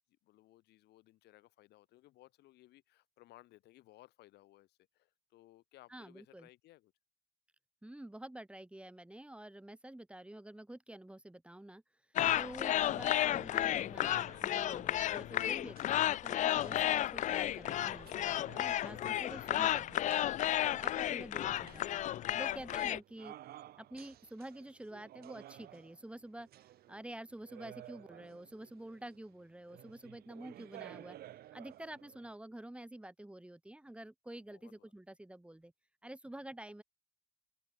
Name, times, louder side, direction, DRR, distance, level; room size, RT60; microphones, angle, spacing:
voice 1, 0.2-6.9 34.3-34.9, left 16 dB, 80° left, 4.7 m, -61 dB
voice 2, 5.9-6.5 7.8-11.8 12.3-20.1 20.7-22.0 22.3-23.3 23.8-31.2 31.5-35.7 36.0-36.8, right 1 dB, 5° right, 2.2 m, -49 dB
sound 1, 12.1-23.0, left 12 dB, 45° left, 0.4 m, -33 dB
sound 2, 14.1-32.4, right 13 dB, 65° right, 1.8 m, -56 dB
open air
cardioid pair, 110°, 17 cm